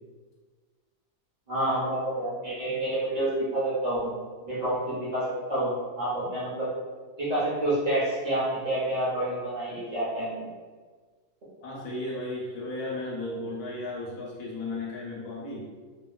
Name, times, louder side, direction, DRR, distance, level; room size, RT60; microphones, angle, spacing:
voice 1, 1.5-4.1 4.4-6.7 7.2-10.5, right 1 dB, 80° right, -8 dB, 0.3 m, -28 dB
voice 2, 11.6-15.7, left 2 dB, 70° left, -4 dB, 1.1 m, -35 dB
2.8 x 2.6 x 2.2 m, 1.4 s
omnidirectional pair, 1.9 m